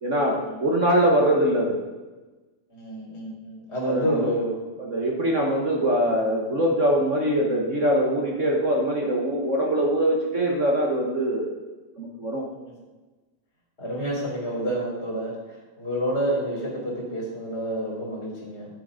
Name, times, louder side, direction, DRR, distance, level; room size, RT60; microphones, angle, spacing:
voice 1, 0.0-1.8 3.8-4.3 4.9-11.5 12.0-12.4, right 1 dB, 50° right, -1 dB, 0.8 m, -23 dB
voice 2, 2.7-4.6 12.5-12.7 13.8-18.7, right 1 dB, 20° left, -4 dB, 3.5 m, -29 dB
10.5 x 7.6 x 5.2 m, 1.2 s
omnidirectional pair, 3.4 m